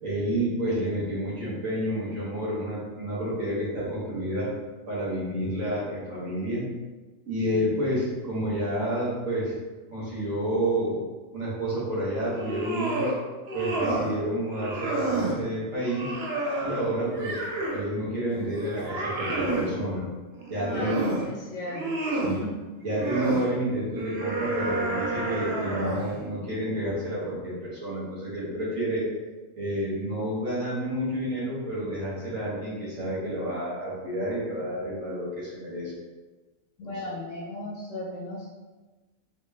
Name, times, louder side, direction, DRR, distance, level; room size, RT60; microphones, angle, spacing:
voice 1, 0.0-4.5 4.9-6.6 7.3-9.5 9.9-11.0 11.3-13.1 13.5-16.1 16.6-17.4 17.7-20.1 20.5-21.0 22.2-22.4 22.8-29.0 29.5-35.9 36.8-36.9, right 1 dB, 80° right, -7 dB, 1.5 m, -29 dB
sound 1, 12.3-13.2 13.5-14.1 14.5-15.4 15.8-17.9 18.3-19.7 20.4-21.3 21.6-22.4 22.9-23.5 24.0-26.1, right 2 dB, 60° right, 0.8 m, -30 dB
voice 2, 20.7-22.0 22.3-22.5 36.8-38.5, left 1 dB, 75° left, -3 dB, 1.0 m, -36 dB
3.8 x 2.2 x 3.2 m, 1.2 s
omnidirectional pair, 1.3 m